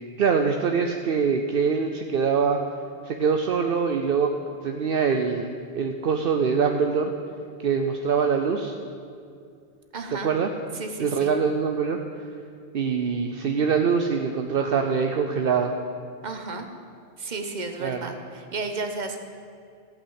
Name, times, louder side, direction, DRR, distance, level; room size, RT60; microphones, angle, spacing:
voice 1, 0.2-2.6 3.0-7.1 7.6-8.8 10.2-10.5 11.0-12.0 12.7-15.7 17.8-18.1, right 6 dB, 65° right, 4 dB, 0.9 m, -24 dB
voice 2, 9.9-10.3 10.7-11.3 16.2-16.7 17.2-19.2, right 3 dB, 45° right, 5 dB, 1.1 m, -33 dB
14.5 x 5.7 x 8.8 m, 2.4 s
omnidirectional pair, 1.0 m